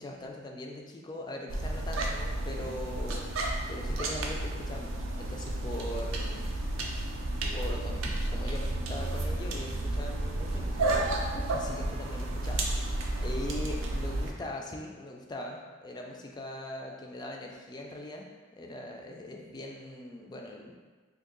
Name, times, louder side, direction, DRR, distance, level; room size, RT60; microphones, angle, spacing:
voice 1, 0.0-3.3 3.7-6.5 7.5-12.9 13.2-18.3 18.5-20.7, left 1 dB, 20° left, 1 dB, 0.3 m, -41 dB
sound 1, 1.5-14.3, right 1 dB, 90° right, 0.5 m, -32 dB
2.7 x 2.6 x 3.7 m, 1.4 s
head